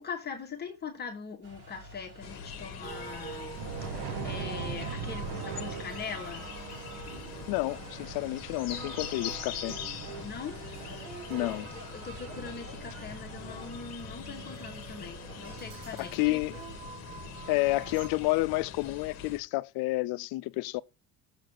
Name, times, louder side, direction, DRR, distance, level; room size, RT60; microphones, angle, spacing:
voice 1, 0.0-6.5 10.2-10.6 11.7-16.4, left 5 dB, 25° left, 1.6 m, -42 dB
sound 1, 1.4-13.7, right 1 dB, 60° right, 5.6 m, -50 dB
sound 2, 2.2-19.4, left 7 dB, 45° left, 1.6 m, -43 dB
sound 3, 2.8-18.1, right 6 dB, 85° right, 1.7 m, -42 dB
voice 2, 7.5-9.8 11.3-11.7 16.0-16.6 17.5-20.8, left 21 dB, 90° left, 0.6 m, -30 dB
7.3 x 4.0 x 6.6 m
cardioid pair, 165°, 37 cm